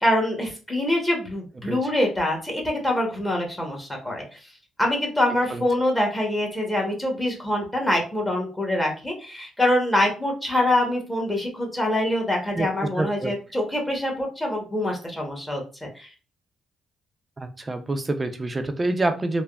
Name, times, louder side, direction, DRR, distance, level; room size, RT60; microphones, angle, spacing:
voice 1, 0.0-4.4 4.8-16.1, left 1 dB, 15° left, 0 dB, 1.0 m, -25 dB
voice 2, 12.5-13.3 17.4-19.4, right 2 dB, 25° right, 7 dB, 0.5 m, -27 dB
3.3 x 2.0 x 2.3 m, 0.34 s
cardioid pair, 90°, 0 cm